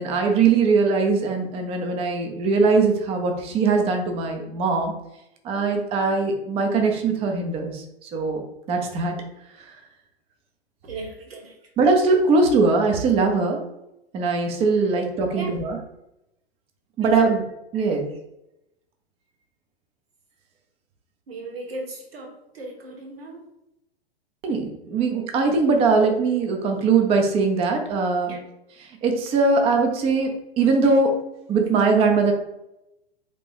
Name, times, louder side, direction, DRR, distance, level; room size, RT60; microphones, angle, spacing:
voice 1, 0.0-4.9 5.4-9.1 9.6-9.8 11.8-13.6 14.1-15.8 17.0-17.4 17.7-18.0 24.4-28.3 29.0-31.1 31.5-32.3, right 4 dB, 20° right, 3 dB, 0.5 m, -21 dB
voice 2, 10.8-11.6 15.3-15.6 17.0-17.3 17.7-18.0 21.3-23.4 28.3-28.4, right 3 dB, 70° right, 1 dB, 1.1 m, -36 dB
3.3 x 2.7 x 3.3 m, 0.87 s
figure-of-eight pair, 100°, 31 cm